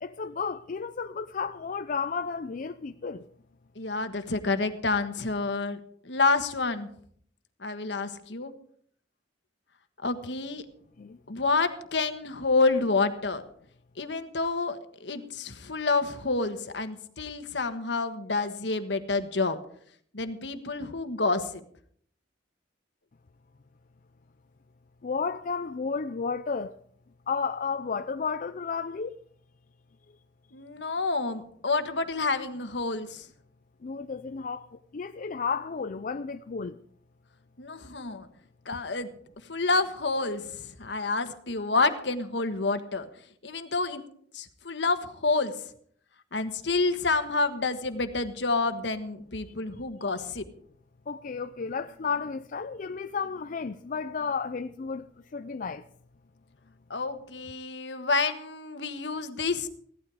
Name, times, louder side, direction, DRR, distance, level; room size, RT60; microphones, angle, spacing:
voice 1, 0.0-3.3 11.0-11.2 25.0-26.8 27.3-29.2 33.8-36.8 51.1-55.1 55.3-55.8, left 5 dB, 45° left, 0.5 m, -32 dB
voice 2, 3.7-5.8 6.0-6.9 7.6-8.5 10.0-10.6 11.3-13.4 14.0-19.6 20.1-21.6 30.5-33.3 37.6-38.3 38.6-39.1 39.5-43.1 43.4-44.0 44.3-45.6 46.3-50.5 56.9-59.7, left 3 dB, 75° left, 1.4 m, -28 dB
16.5 x 12.5 x 4.9 m
head